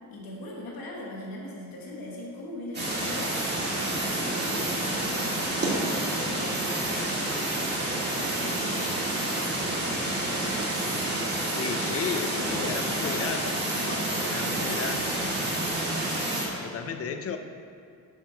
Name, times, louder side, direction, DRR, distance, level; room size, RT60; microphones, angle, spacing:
voice 1, 0.1-3.4 4.0-7.0 8.1-10.7 12.3-13.4 13.7-15.5, left 1 dB, 75° left, -3 dB, 1.3 m, -40 dB
sound 1, 2.7-16.5, right 1 dB, 30° right, 1.6 m, -29 dB
voice 2, 11.5-13.5 14.2-15.1 16.6-17.4, left 6 dB, 40° left, 7 dB, 0.5 m, -33 dB
7.2 x 3.6 x 5.7 m, 2.2 s
cardioid pair, 135°, 35 cm